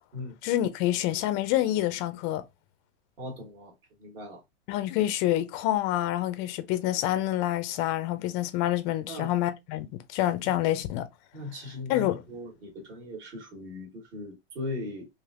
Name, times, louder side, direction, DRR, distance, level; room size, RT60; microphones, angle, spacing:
voice 1, 0.4-2.4 4.7-11.1 11.9-12.2, left 13 dB, 30° left, 0.4 m, -27 dB
voice 2, 3.2-3.7 4.0-4.4 9.1-9.3 11.3-15.1, left 2 dB, 50° right, 1.4 m, -38 dB
3.3 x 2.6 x 2.4 m
hypercardioid pair, 125°, 37 cm